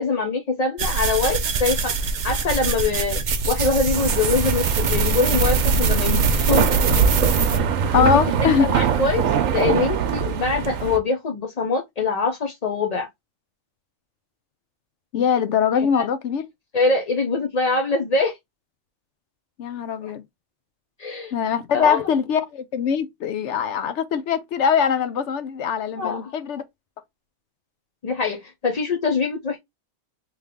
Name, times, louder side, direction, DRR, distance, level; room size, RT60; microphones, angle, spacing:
voice 1, 0.0-1.9 2.2-3.2 3.5-6.6 8.0-9.2 9.5-13.1 16.0-16.1 16.7-18.4 20.0-20.1 21.0-21.3 21.7-22.0 26.0-26.3 28.0-29.6, left 4 dB, 50° left, 0.5 m, -23 dB
sound 1, 0.8-7.6, right 4 dB, 55° right, 0.5 m, -22 dB
sound 2, 3.9-11.0, right 8 dB, 80° right, 1.0 m, -24 dB
voice 2, 7.9-8.7 15.1-16.5 19.6-20.2 21.3-26.6, left 7 dB, 65° left, 0.8 m, -22 dB
3.3 x 2.9 x 3.6 m
omnidirectional pair, 1.4 m